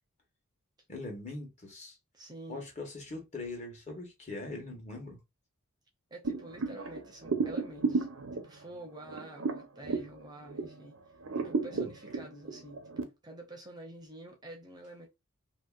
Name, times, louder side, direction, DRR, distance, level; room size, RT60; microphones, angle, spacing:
voice 1, 0.9-2.0 2.5-5.2 11.7-11.9, left 2 dB, 30° left, 1.2 m, -41 dB
voice 2, 2.1-2.6 6.1-8.1 8.3-11.0 11.4-15.1, right 1 dB, 20° right, 0.7 m, -48 dB
sound 1, 6.2-10.9 11.2-13.0, right 4 dB, 70° right, 0.6 m, -34 dB
2.8 x 2.8 x 2.3 m
head